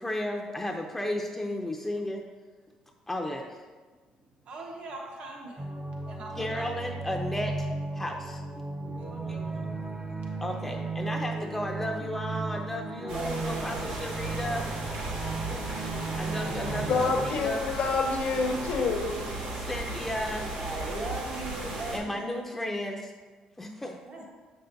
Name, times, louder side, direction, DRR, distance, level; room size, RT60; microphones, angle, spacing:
voice 1, 0.0-2.2 3.1-3.6 6.4-7.7 7.9-8.4 9.3-9.4 10.4-14.6 16.2-17.0 17.2-17.6 19.5-20.6 21.9-23.1 23.6-23.9, left 1 dB, 10° left, 2 dB, 0.5 m, -34 dB
voice 2, 4.5-5.6 6.1-6.6 8.9-9.5 10.3-10.4 13.0-13.1, right 2 dB, 65° right, -1 dB, 1.1 m, -43 dB
sound 1, 5.6-17.3, right 3 dB, 25° right, 0.7 m, -35 dB
voice 3, 13.0-13.9 20.6-22.3 23.8-24.3, right 2 dB, 45° right, 0 dB, 1.3 m, -38 dB
sound 2, 13.1-22.0, right 2 dB, 85° right, 1.4 m, -35 dB
voice 4, 16.9-19.2, left 4 dB, 70° left, 4 dB, 0.7 m, -27 dB
7.0 x 5.6 x 2.7 m, 1.4 s
cardioid pair, 95°, 2 cm